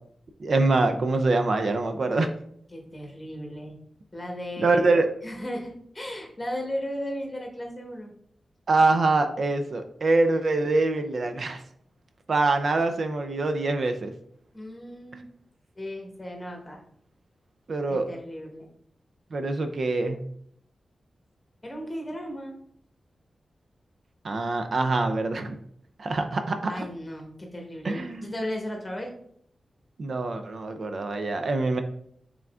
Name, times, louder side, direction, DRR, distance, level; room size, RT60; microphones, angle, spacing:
voice 1, 0.4-2.3 4.6-5.1 8.7-11.6 12.3-14.1 17.7-18.1 19.3-20.2 24.2-25.6 26.0-26.7 27.8-28.3 30.0-31.8, right 3 dB, 60° right, 7 dB, 0.4 m, -24 dB
voice 2, 2.7-3.7 4.1-5.0 5.2-8.1 14.5-15.3 15.7-16.8 17.9-18.7 21.6-22.6 26.7-29.1, equal, 20° left, 1 dB, 1.2 m, -35 dB
5.7 x 3.7 x 2.4 m, 0.65 s
wide cardioid pair, 100°, 0 cm